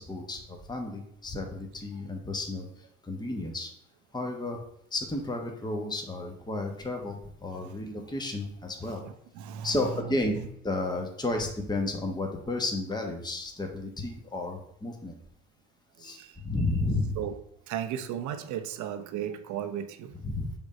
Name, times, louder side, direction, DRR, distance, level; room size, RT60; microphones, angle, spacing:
voice 1, 0.0-2.7 3.0-3.7 4.1-4.6 4.9-9.0 9.6-10.4 10.6-15.2 16.0-16.2 16.4-17.2 20.2-20.5, left 2 dB, 15° left, 2 dB, 1.1 m, -32 dB
voice 2, 8.8-10.5 16.0-16.5 17.2-17.4 17.7-20.2, right 10 dB, 65° right, 8 dB, 0.8 m, -36 dB
5.1 x 3.6 x 5.3 m, 0.73 s
hypercardioid pair, 60°, 32 cm